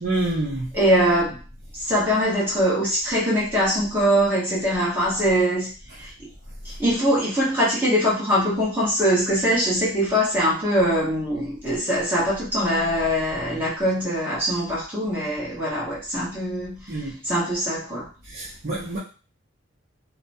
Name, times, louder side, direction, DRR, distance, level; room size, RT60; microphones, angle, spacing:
voice 1, 0.0-0.7 16.9-17.1 18.3-19.0, right 2 dB, 45° right, -7 dB, 0.6 m, -27 dB
voice 2, 0.7-1.4 1.8-5.7 6.0-6.1 6.8-16.8 17.2-18.1, equal, 10° right, -7 dB, 1.0 m, -22 dB
2.7 x 2.1 x 2.6 m, 0.35 s
head